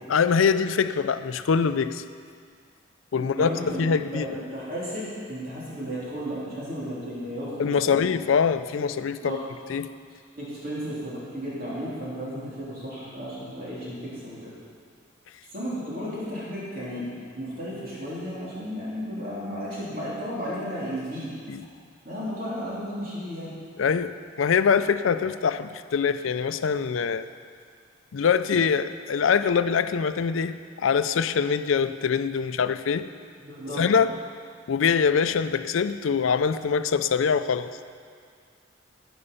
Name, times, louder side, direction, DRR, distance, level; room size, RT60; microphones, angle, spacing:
voice 1, 0.1-2.0 3.1-4.4 7.6-9.4 9.7-9.9 21.5-21.6 23.8-27.3 28.1-33.1 33.8-34.1 34.7-37.7, left 6 dB, 85° left, 12 dB, 0.4 m, -24 dB
voice 2, 3.2-8.1 9.2-9.4 10.3-14.5 15.5-17.1 17.3-21.3 22.0-23.5 33.4-33.8, equal, 45° right, -8 dB, 3.5 m, -34 dB
12.0 x 9.8 x 5.6 m, 2.1 s
head